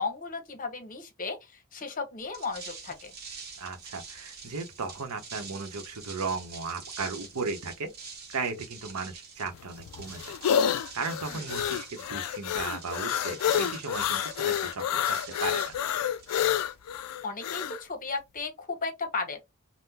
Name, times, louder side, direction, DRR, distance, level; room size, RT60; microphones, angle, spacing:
voice 1, 0.0-1.4 1.7-3.1 11.3-11.4 17.2-19.4, left 4 dB, 40° left, 0.8 m, -34 dB
sound 1, 2.2-17.0, right 4 dB, 45° right, 0.9 m, -45 dB
voice 2, 3.6-7.9 8.3-15.7, right 4 dB, 85° right, 0.8 m, -36 dB
sound 2, 9.5-17.8, left 9 dB, 85° left, 0.3 m, -29 dB
3.6 x 2.1 x 2.7 m
head